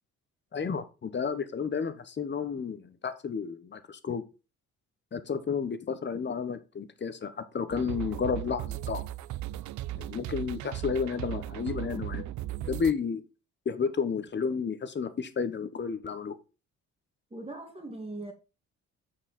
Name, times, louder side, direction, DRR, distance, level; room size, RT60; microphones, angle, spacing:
voice 1, 0.5-4.2 5.1-9.0 9.9-12.2 12.6-13.2 13.6-16.3, left 6 dB, 35° left, 1.0 m, -32 dB
sound 1, 7.7-12.9, right 14 dB, 70° right, 0.5 m, -37 dB
voice 2, 17.3-18.3, right 2 dB, 20° right, 2.1 m, -40 dB
8.6 x 4.9 x 4.1 m
cardioid pair, 90°, 30 cm